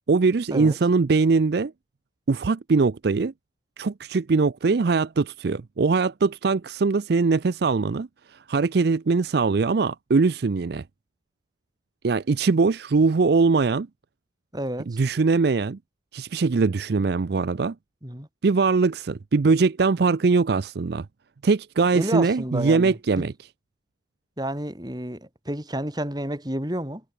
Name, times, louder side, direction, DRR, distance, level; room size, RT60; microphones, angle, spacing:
voice 1, 0.1-1.7 2.3-3.3 3.8-10.8 12.0-13.9 14.9-15.8 16.1-17.7 18.4-21.1 21.4-23.3, right 4 dB, 60° right, 0.5 m, -22 dB
voice 2, 14.5-15.0 18.0-18.3 21.9-23.3 24.4-27.0, right 1 dB, 20° right, 3.6 m, -30 dB
head